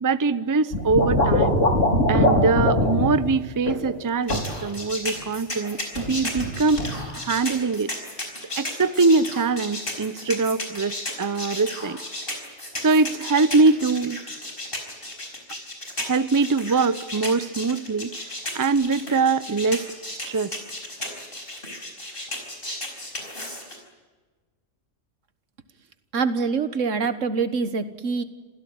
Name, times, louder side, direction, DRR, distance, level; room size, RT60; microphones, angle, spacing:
voice 1, 0.0-1.6 2.1-6.8 7.1-7.9 8.6-12.0 12.8-14.2 16.0-18.1 18.5-19.9 20.3-20.6, right 4 dB, 20° right, 15 dB, 0.6 m, -22 dB
sound 1, 0.7-3.1 3.7-3.9 4.3-4.6 5.9-6.5 6.8-7.0, left 1 dB, 80° left, 4.6 m, -21 dB
sound 2, 4.3-23.8, left 1 dB, 45° left, 5.4 m, -34 dB
voice 2, 26.1-28.2, right 5 dB, 85° right, 12 dB, 1.8 m, -25 dB
27.0 x 16.5 x 9.5 m, 1.3 s
omnidirectional pair, 1.3 m